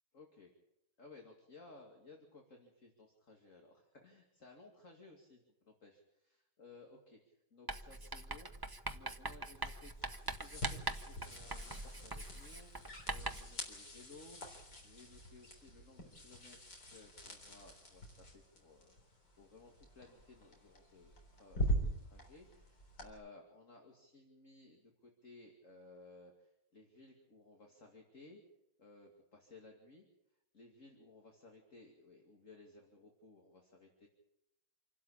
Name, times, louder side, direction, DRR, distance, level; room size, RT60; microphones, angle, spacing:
voice 1, 0.1-0.5 1.0-9.9 10.2-12.7 13.1-14.5 14.8-28.4 28.8-30.0 30.5-34.1, left 3 dB, 45° left, 1 dB, 2.7 m, -59 dB
Writing, 7.7-13.6, right 2 dB, 20° right, 0.6 m, -43 dB
sound 1, 9.5-23.1, equal, 70° left, 4.4 m, -44 dB
27.0 x 12.0 x 8.6 m, 0.85 s
omnidirectional pair, 1.9 m